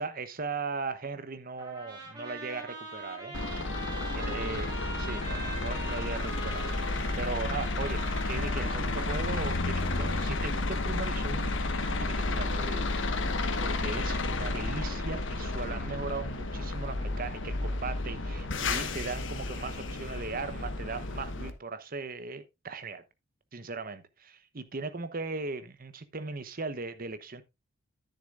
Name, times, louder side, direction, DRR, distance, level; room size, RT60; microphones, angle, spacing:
voice 1, 0.0-3.4 4.1-8.0 8.3-12.8 13.6-23.0 23.5-27.4, right 4 dB, 45° right, 0.9 m, -38 dB
Trumpet, 1.6-10.2, right 2 dB, 20° right, 6.0 m, -43 dB
sound 1, 3.3-21.5, left 2 dB, 65° left, 1.2 m, -32 dB
10.5 x 9.7 x 2.5 m
head